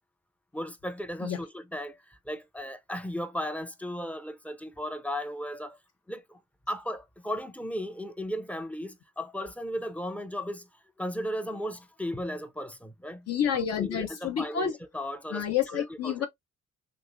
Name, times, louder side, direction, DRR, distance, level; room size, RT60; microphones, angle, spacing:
voice 1, 0.5-5.8 6.1-6.4 6.7-10.7 11.0-13.3 13.8-16.3, equal, 5° left, 0.5 m, -36 dB
voice 2, 13.3-14.8 15.3-16.3, left 8 dB, 55° left, 0.6 m, -29 dB
3.0 x 2.9 x 2.5 m
cardioid pair, 90°, 30 cm